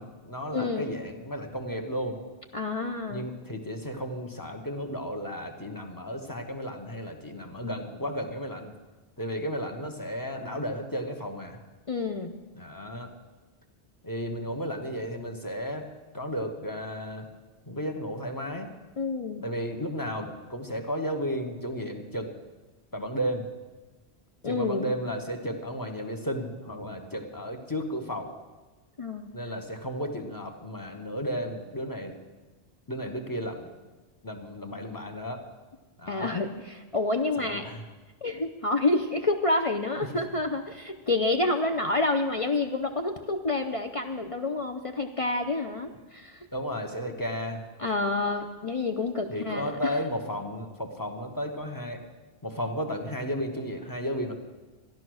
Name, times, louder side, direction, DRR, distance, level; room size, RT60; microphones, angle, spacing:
voice 1, 0.0-2.2 3.1-8.7 9.2-11.6 12.6-13.1 14.0-15.9 16.1-17.3 17.7-18.7 19.4-22.3 22.9-23.4 24.4-28.3 29.3-32.2 32.9-33.7 34.2-35.4 36.0-36.3 37.4-37.8 40.1-40.2 46.5-47.6 49.3-52.0 52.4-54.3, equal, 20° left, 4 dB, 1.2 m, -33 dB
voice 2, 0.5-0.9 2.5-3.3 11.9-12.3 19.0-19.4 24.4-24.9 29.0-29.3 36.1-37.7 38.2-46.5 47.8-50.0, left 2 dB, 40° left, 4 dB, 0.6 m, -28 dB
13.5 x 10.5 x 6.3 m, 1.2 s
omnidirectional pair, 1.1 m